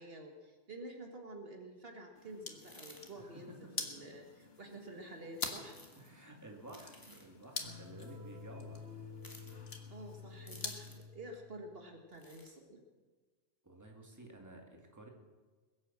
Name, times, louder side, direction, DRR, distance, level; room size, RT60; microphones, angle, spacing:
voice 1, 0.0-3.5 3.8-5.8 7.1-7.2 9.9-12.8, right 1 dB, 60° right, 3 dB, 1.8 m, -49 dB
sound 1, 2.2-11.0, left 4 dB, 65° left, 1.7 m, -47 dB
sound 2, 2.5-3.1 5.6-6.1 6.7-7.3 9.2-9.6 10.5-11.1 12.1-12.5, left 1 dB, 20° left, 2.0 m, -56 dB
voice 2, 3.2-4.0 6.0-8.9 13.6-15.1, right 1 dB, 15° right, 1 dB, 2.2 m, -53 dB
sound 3, 7.6-11.7, left 5 dB, 80° right, 2.1 m, -50 dB
21.5 x 8.5 x 7.3 m, 1.4 s
omnidirectional pair, 1.1 m